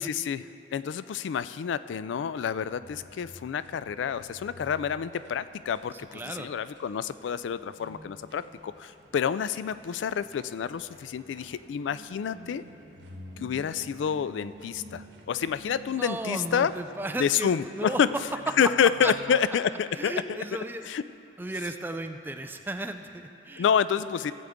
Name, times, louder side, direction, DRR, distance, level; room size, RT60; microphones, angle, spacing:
voice 1, 0.0-12.6 13.4-16.7 17.2-18.1 18.6-20.1 20.9-21.0 23.6-24.3, left 7 dB, 90° left, 15 dB, 0.3 m, -28 dB
sound 1, 2.2-19.4, equal, 85° right, 1.3 m, -51 dB
voice 2, 5.9-6.5 16.0-18.0 19.0-19.1 19.9-20.9 21.4-23.7, right 2 dB, 10° right, 6 dB, 0.4 m, -35 dB
17.0 x 7.8 x 3.6 m, 2.7 s
head